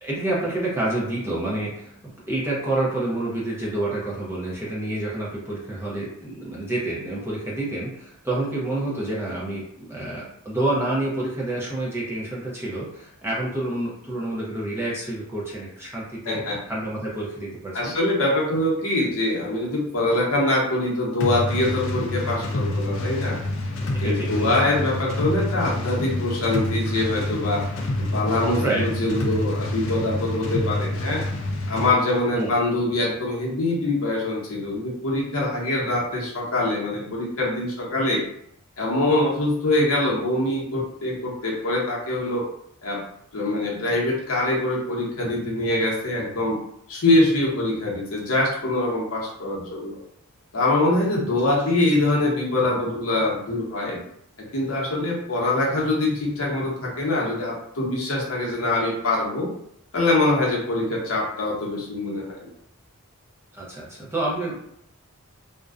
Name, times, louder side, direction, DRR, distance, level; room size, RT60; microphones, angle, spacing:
voice 1, 0.0-16.4 16.7-17.9 23.9-24.5 28.6-29.2 32.3-32.5 63.5-64.7, right 2 dB, 10° right, -6 dB, 0.5 m, -28 dB
voice 2, 16.3-16.6 17.7-23.4 24.0-27.6 28.0-31.2 31.7-38.2 38.8-42.4 42.8-43.0 43.3-46.6 46.9-50.0 50.5-54.0 54.5-59.5 59.9-62.5, left 2 dB, 70° left, -3 dB, 0.8 m, -24 dB
sound 1, 21.2-31.9, left 1 dB, 55° left, 0.3 m, -27 dB
2.5 x 2.1 x 2.4 m, 0.71 s
head